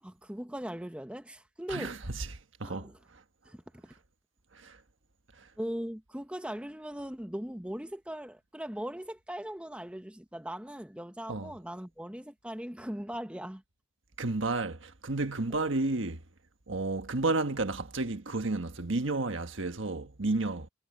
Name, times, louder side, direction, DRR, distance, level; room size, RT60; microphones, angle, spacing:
voice 1, 0.0-2.0 2.6-3.0 3.5-3.9 5.6-13.6 15.5-15.7, equal, 5° right, 0.9 m, -39 dB
voice 2, 1.7-2.3 2.6-3.2 4.5-4.8 5.4-5.5 11.3-11.5 14.2-16.2 16.7-20.7, right 2 dB, 65° right, 1.4 m, -32 dB
head